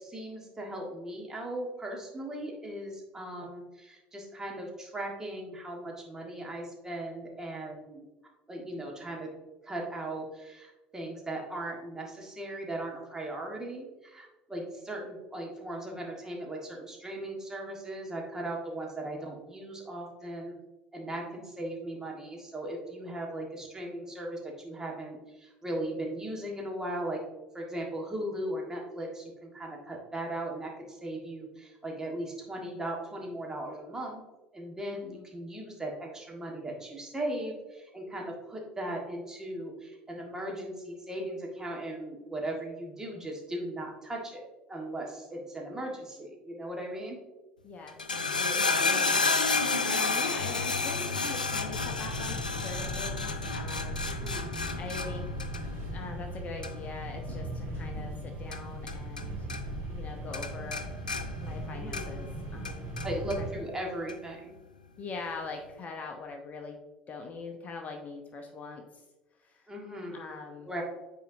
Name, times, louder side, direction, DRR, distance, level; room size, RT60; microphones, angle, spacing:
voice 1, 0.0-8.1 8.5-9.3 9.6-20.5 20.9-27.2 27.5-34.2 34.5-44.4 44.7-47.2 54.0-54.5 61.7-62.2 63.0-64.5 69.7-70.3 70.6-70.8, right 1 dB, 15° right, -1 dB, 1.6 m, -38 dB
voice 2, 34.9-35.2 47.6-49.2 49.5-54.0 54.8-55.3 55.9-59.5 59.9-60.9 61.4-63.6 65.0-66.8 67.1-69.0 69.4-69.7 70.1-70.7, left 4 dB, 35° left, 3 dB, 0.8 m, -42 dB
sound 1, 47.9-59.2 59.5-60.1 60.3-62.3 62.6-63.4 64.1-64.2, left 4 dB, 85° left, 0.4 m, -31 dB
sound 2, 51.6-63.5, right 1 dB, 50° right, 1.9 m, -38 dB
9.2 x 4.4 x 2.7 m, 1.1 s
figure-of-eight pair, 65°, 4 cm